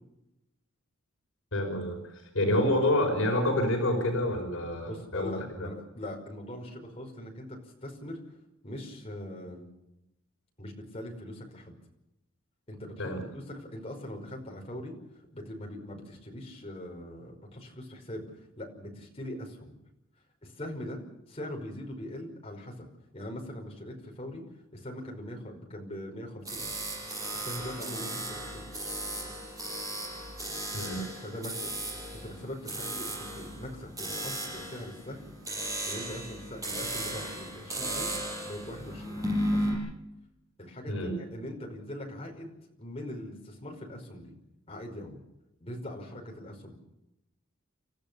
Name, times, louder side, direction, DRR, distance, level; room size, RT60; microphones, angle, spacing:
voice 1, 1.5-5.3 5.6-5.7 13.0-13.2 30.7-31.0 40.9-41.1, left 1 dB, 70° left, 2 dB, 5.3 m, -28 dB
voice 2, 4.9-8.2 8.6-9.6 10.6-11.8 12.7-14.9 15.3-19.7 20.4-21.0 21.3-22.9 23.1-24.4 24.7-26.9 27.3-28.9 31.2-31.7 32.2-35.3 35.8-38.2 38.4-39.8 40.6-44.3 44.7-45.2 45.6-46.8, left 1 dB, 30° left, 1 dB, 5.3 m, -41 dB
sound 1, 26.4-39.7, right 1 dB, 15° right, 7.9 m, -35 dB
29.5 x 14.5 x 7.0 m, 0.89 s
head